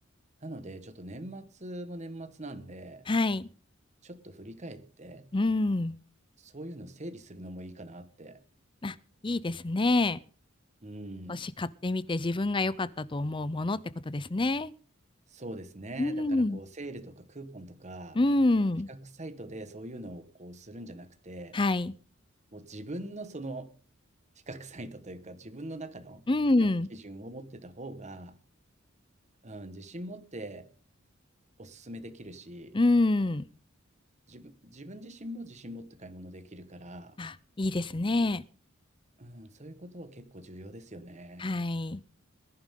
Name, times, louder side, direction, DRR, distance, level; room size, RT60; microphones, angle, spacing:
voice 1, 0.4-3.1 4.0-5.3 6.4-8.4 10.8-11.5 15.3-18.2 18.9-21.6 22.5-23.8 24.5-26.3 26.6-28.4 29.4-30.7 31.6-32.8 34.3-37.2 39.2-41.5, right 1 dB, 35° right, 10 dB, 1.4 m, -43 dB
voice 2, 3.1-3.5 5.3-6.0 8.8-8.9 9.2-10.2 11.3-14.7 16.0-16.6 18.2-18.9 21.5-21.9 26.3-26.9 32.7-33.4 37.2-38.4 41.4-42.0, left 2 dB, 25° left, 18 dB, 0.6 m, -27 dB
21.0 x 11.0 x 3.8 m, 0.39 s
head